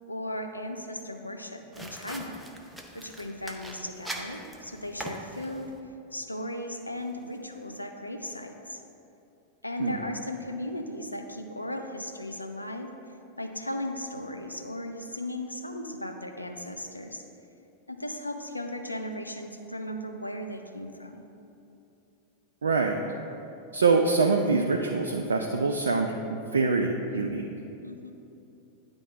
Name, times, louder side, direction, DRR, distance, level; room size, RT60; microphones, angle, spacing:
voice 1, 0.1-2.4 2.9-5.7 6.1-8.8 9.6-12.9 13.4-17.2 17.9-21.3 27.8-28.1, left 1 dB, 85° left, 4 dB, 0.5 m, -36 dB
sound 1, 1.7-5.8, right 1 dB, 5° right, 0.7 m, -42 dB
voice 2, 22.6-23.0 23.7-27.5, right 4 dB, 70° right, 2 dB, 0.4 m, -25 dB
9.9 x 3.5 x 4.0 m, 2.8 s
figure-of-eight pair, 90°, 0 cm